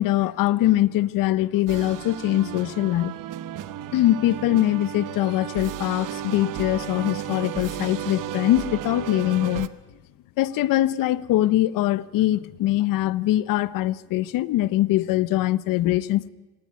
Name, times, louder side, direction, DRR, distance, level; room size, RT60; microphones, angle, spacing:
voice 1, 0.0-3.2 3.9-9.7 10.4-16.3, left 14 dB, 90° left, 0.8 m, -22 dB
sound 1, 1.7-9.7, right 12 dB, 75° right, 1.0 m, -34 dB
25.0 x 16.0 x 9.5 m
cardioid pair, 110°, 32 cm